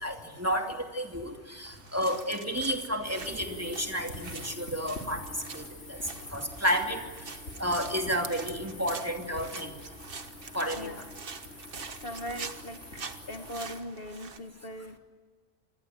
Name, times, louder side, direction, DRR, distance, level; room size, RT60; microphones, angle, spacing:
voice 1, 0.0-5.2 5.5-5.6 6.3-7.0 7.6-9.7 10.5-10.9, equal, 10° right, 3 dB, 2.6 m, -31 dB
sound 1, 1.6-14.4, right 5 dB, 50° right, 1.5 m, -45 dB
sound 2, 3.0-13.8, left 2 dB, 75° left, 3.4 m, -45 dB
voice 2, 10.7-11.1 12.0-15.0, equal, 55° left, 6 dB, 1.8 m, -40 dB
27.5 x 20.5 x 9.0 m, 1.4 s
omnidirectional pair, 1.2 m